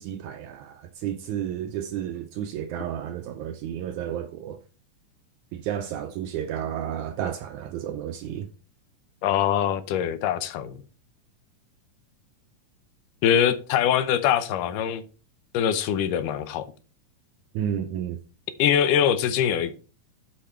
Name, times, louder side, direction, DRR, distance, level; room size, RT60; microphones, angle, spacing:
voice 1, 0.0-4.6 5.5-8.5 17.6-18.2, right 10 dB, 80° right, 1.7 m, -32 dB
voice 2, 9.2-10.8 13.2-15.0 15.5-16.7 18.6-19.7, left 9 dB, 80° left, 2.2 m, -23 dB
8.5 x 5.6 x 4.3 m
omnidirectional pair, 3.9 m